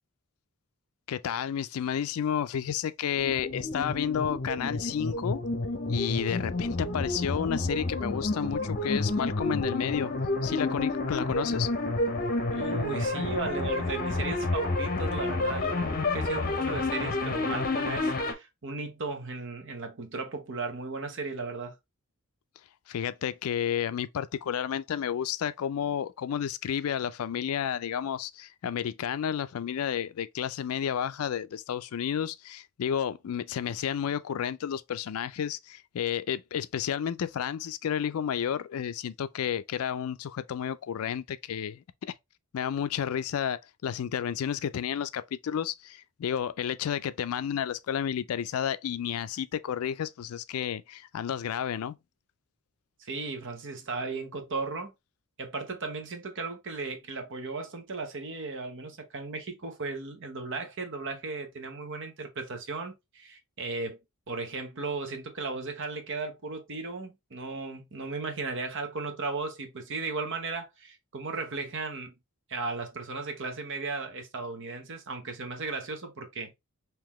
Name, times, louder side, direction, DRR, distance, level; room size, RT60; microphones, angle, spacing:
voice 1, 1.1-5.4 5.9-10.1 10.4-11.7 22.9-41.8 42.5-52.0, left 8 dB, 70° left, 0.3 m, -31 dB
sound 1, 3.2-18.3, left 2 dB, 40° left, 0.8 m, -30 dB
voice 2, 12.5-21.8 53.0-54.9 55.4-64.0 64.3-72.1 72.5-76.6, right 3 dB, 60° right, 1.0 m, -36 dB
3.8 x 2.9 x 3.0 m
head